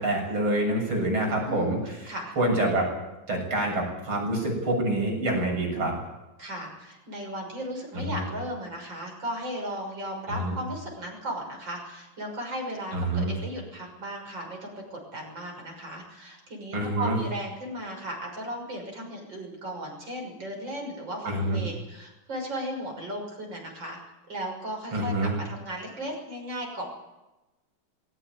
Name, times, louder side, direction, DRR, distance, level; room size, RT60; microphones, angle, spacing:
voice 1, 0.0-2.9 3.3-6.0 7.9-8.2 10.3-10.5 12.9-13.3 16.7-17.2 21.3-21.6 24.9-25.3, right 1 dB, 85° right, 1 dB, 8.3 m, -27 dB
voice 2, 1.4-2.4 6.4-24.0 24.3-26.9, right 1 dB, 60° right, 1 dB, 7.0 m, -36 dB
20.5 x 17.5 x 9.5 m, 1.0 s
omnidirectional pair, 2.2 m